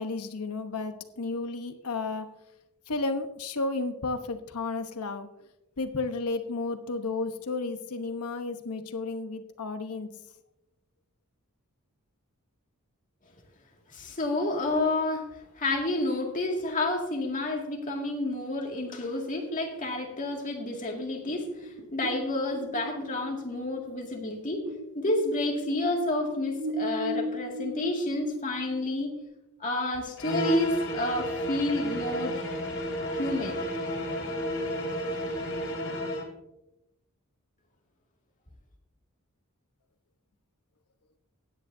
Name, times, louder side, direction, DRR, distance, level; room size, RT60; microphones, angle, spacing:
voice 1, 0.0-2.3 2.9-5.3 5.8-10.1, left 3 dB, 85° left, 8 dB, 1.0 m, -32 dB
voice 2, 13.9-24.7 24.9-29.2 29.6-32.4 33.2-33.6 35.0-35.1, left 2 dB, 35° left, 1 dB, 2.1 m, -30 dB
sound 1, 21.3-24.8 25.1-29.2, equal, 60° right, 2.1 m, -36 dB
sound 2, 30.2-36.3, left 1 dB, 60° left, 3.3 m, -31 dB
16.5 x 9.9 x 2.7 m, 0.89 s
head